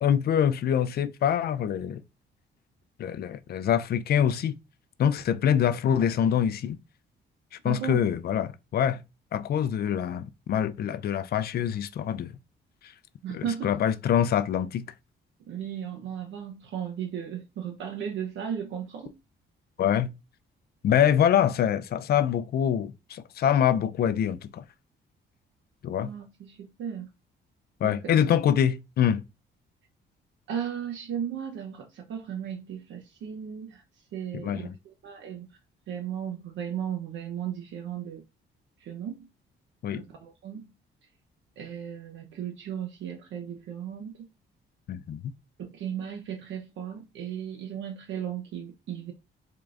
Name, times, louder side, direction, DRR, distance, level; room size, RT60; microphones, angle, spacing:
voice 1, 0.0-2.0 3.0-4.5 5.0-6.8 7.6-9.0 9.3-12.3 13.3-14.9 19.8-20.1 20.8-24.6 25.8-26.1 27.8-29.2 34.3-34.8 39.8-40.0 44.9-45.2, left 9 dB, 50° left, 0.4 m, -25 dB
voice 2, 7.6-8.1 13.2-13.7 15.5-19.2 26.0-27.1 27.8-28.4 30.5-33.8 34.1-35.6 35.9-38.2 38.8-39.3 39.9-40.7 41.6-44.3 45.6-49.1, right 8 dB, 75° right, 0.7 m, -36 dB
3.7 x 2.4 x 3.3 m
cardioid pair, 90°, 20 cm